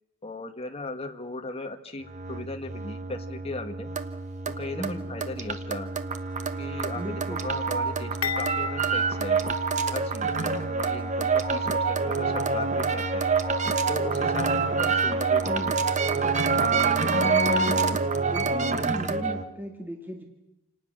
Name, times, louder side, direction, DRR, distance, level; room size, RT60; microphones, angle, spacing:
voice 1, 0.2-3.9 4.4-5.9 6.6-7.0 7.4-9.4 9.9-13.3 13.9-15.5 16.6-17.6, left 2 dB, 30° left, 6 dB, 1.7 m, -37 dB
sound 1, 2.1-19.4, right 4 dB, 35° right, 1.2 m, -26 dB
voice 2, 4.7-5.1 6.9-7.5 15.5-15.9 18.3-20.2, equal, 10° right, 2 dB, 2.2 m, -36 dB
sound 2, 8.2-10.4 10.7-10.9 11.8-11.9, left 6 dB, 85° left, 2.3 m, -35 dB
28.0 x 19.0 x 6.6 m, 0.90 s
head